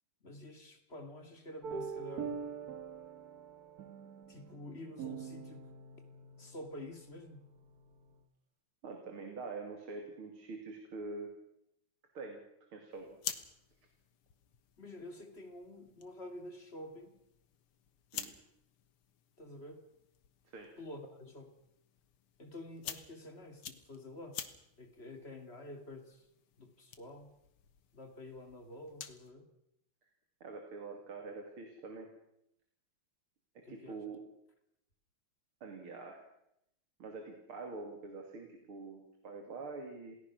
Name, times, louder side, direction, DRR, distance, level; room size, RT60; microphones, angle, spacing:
voice 1, 0.2-2.4 4.3-5.7 6.4-7.4 14.8-17.1 19.4-19.8 20.8-21.5 22.4-24.4 24.8-26.3 26.6-27.3 27.9-29.5 33.6-34.0, left 1 dB, 30° left, 5 dB, 2.6 m, -49 dB
sound 1, 1.6-8.2, right 6 dB, 50° right, 1.6 m, -45 dB
voice 2, 8.8-11.3 12.1-12.4 12.7-13.2 18.1-18.3 20.5-20.7 30.4-32.1 33.7-34.2 35.6-36.2 37.0-40.2, right 3 dB, 75° right, 3 dB, 3.5 m, -45 dB
sound 2, 12.9-29.3, left 8 dB, 85° left, 2.3 m, -50 dB
28.0 x 18.0 x 6.2 m, 0.81 s
omnidirectional pair, 2.4 m